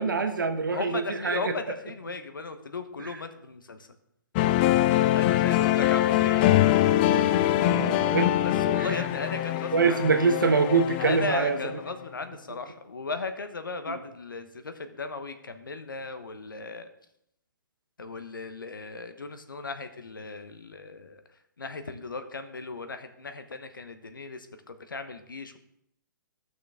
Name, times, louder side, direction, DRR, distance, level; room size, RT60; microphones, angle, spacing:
voice 1, 0.0-1.5 3.0-3.2 6.6-9.0 9.7-11.6, right 5 dB, 75° right, 6 dB, 1.2 m, -26 dB
voice 2, 0.7-3.8 5.1-6.5 7.8-10.0 11.0-16.9 18.0-21.2 21.6-25.6, left 3 dB, 80° left, 9 dB, 1.1 m, -36 dB
sound 1, 4.4-11.9, left 14 dB, 30° left, 0.3 m, -23 dB
15.0 x 6.3 x 3.5 m, 0.76 s
figure-of-eight pair, 125°, 11 cm